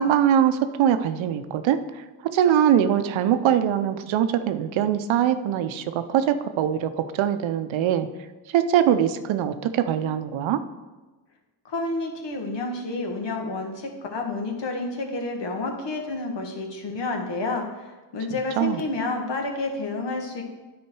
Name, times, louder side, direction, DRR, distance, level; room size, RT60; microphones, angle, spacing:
voice 1, 0.0-1.8 2.2-8.1 8.5-10.6 18.6-18.8, right 9 dB, 70° right, 10 dB, 0.7 m, -22 dB
voice 2, 11.7-20.4, left 3 dB, 60° left, 2 dB, 1.6 m, -30 dB
9.4 x 4.2 x 4.7 m, 1.2 s
supercardioid pair, 50°, 48 cm